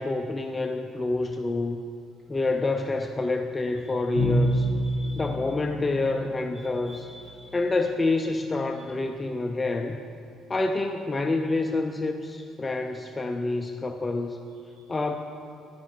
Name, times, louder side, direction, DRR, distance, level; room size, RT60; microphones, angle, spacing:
voice 1, 0.0-1.8 2.3-4.7 5.2-7.1 7.5-10.0 10.5-14.4 14.9-15.2, left 2 dB, 15° left, 5 dB, 0.3 m, -27 dB
voice 2, 3.8-5.5 6.5-7.7 8.7-8.9 14.5-15.1, equal, 25° right, -3 dB, 2.0 m, -52 dB
Bowed string instrument, 4.2-7.0, equal, 65° right, 2.2 m, -27 dB
10.0 x 9.2 x 4.4 m, 2.5 s
cardioid pair, 145°, 0 cm